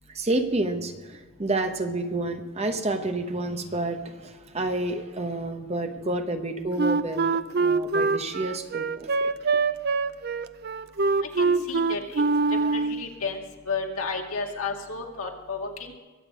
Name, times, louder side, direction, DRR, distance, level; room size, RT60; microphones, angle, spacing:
voice 1, 0.1-9.1, right 2 dB, 30° right, 6 dB, 0.9 m, -29 dB
Wind instrument woodwind instrument, 6.8-13.1, right 4 dB, 45° right, 0.4 m, -24 dB
voice 2, 11.3-12.2 12.5-16.0, left 4 dB, 75° left, 1 dB, 2.2 m, -32 dB
22.5 x 8.2 x 5.0 m, 1.3 s
head